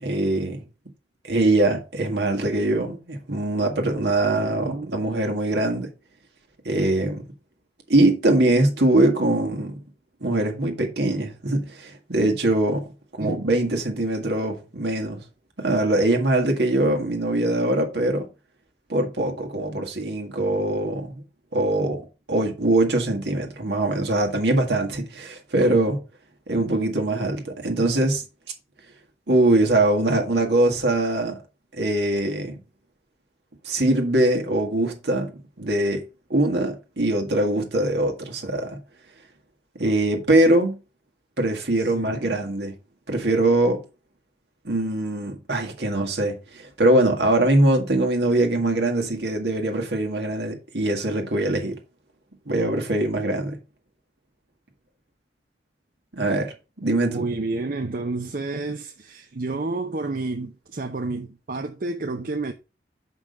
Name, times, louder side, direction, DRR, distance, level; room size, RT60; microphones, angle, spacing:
voice 1, 0.0-0.6 1.2-5.9 6.7-7.2 7.9-9.8 10.2-12.8 13.2-15.2 15.6-18.3 18.9-21.2 21.5-22.0 22.3-26.0 26.5-28.2 29.3-31.4 31.7-32.6 33.7-35.3 35.6-36.0 36.3-38.8 39.8-40.8 41.4-42.7 43.1-43.8 44.7-51.8 52.5-53.6 56.1-56.5 56.8-57.3, right 1 dB, 70° right, 1.7 m, -22 dB
voice 2, 4.3-5.1 13.2-13.4 41.8-42.5 57.1-62.5, right 3 dB, 50° right, 0.6 m, -30 dB
6.1 x 5.4 x 5.2 m
head